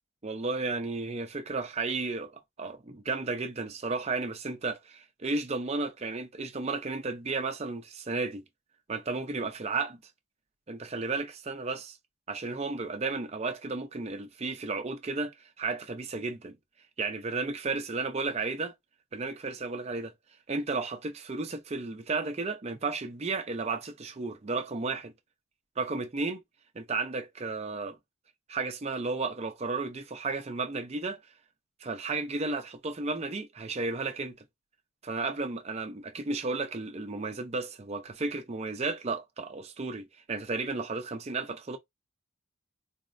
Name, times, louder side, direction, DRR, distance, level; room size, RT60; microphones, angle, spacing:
voice 1, 0.2-8.4 8.9-10.0 10.7-12.0 12.3-16.6 17.0-18.7 19.1-20.1 20.5-25.1 25.8-26.4 26.7-28.0 28.5-31.2 31.8-34.4 35.0-41.8, right 3 dB, 30° right, 0.4 m, -33 dB
4.0 x 2.0 x 2.5 m
head